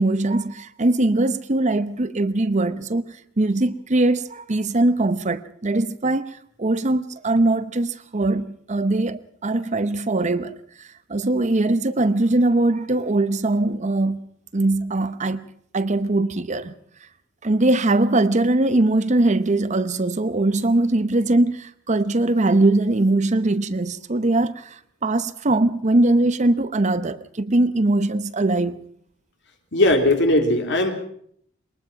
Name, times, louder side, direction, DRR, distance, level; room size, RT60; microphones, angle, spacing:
voice 1, 0.0-14.3 14.5-15.5 15.7-16.7 17.4-28.8, right 2 dB, 35° right, 0.8 m, -21 dB
voice 2, 29.7-30.9, left 1 dB, 60° left, 3.1 m, -18 dB
22.5 x 20.0 x 5.8 m
head